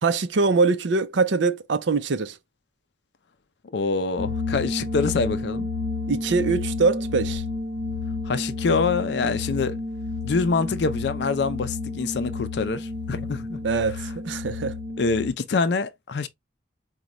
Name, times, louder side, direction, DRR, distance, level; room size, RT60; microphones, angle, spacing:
voice 1, 0.0-2.4 6.1-7.4 13.6-14.0 14.2-14.7, right 4 dB, 80° right, 0.6 m, -23 dB
voice 2, 3.7-5.7 8.3-9.8 10.2-13.6 13.9-14.0 15.0-16.3, left 4 dB, 70° left, 0.4 m, -25 dB
sound 1, 4.2-15.3, left 3 dB, 60° right, 1.6 m, -31 dB
5.1 x 2.3 x 2.9 m
head